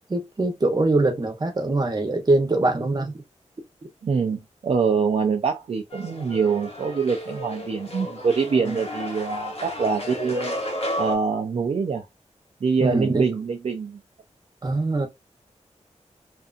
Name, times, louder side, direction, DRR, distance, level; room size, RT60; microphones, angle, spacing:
voice 1, 0.1-3.1 8.6-8.8 12.8-13.2 14.6-15.1, right 2 dB, 35° right, 0.8 m, -23 dB
voice 2, 4.0-10.6 11.0-12.0 12.6-14.0, right 5 dB, 55° right, 0.5 m, -24 dB
sound 1, 5.9-11.2, left 1 dB, 60° left, 0.9 m, -33 dB
2.6 x 2.5 x 2.4 m
wide cardioid pair, 125°, 12 cm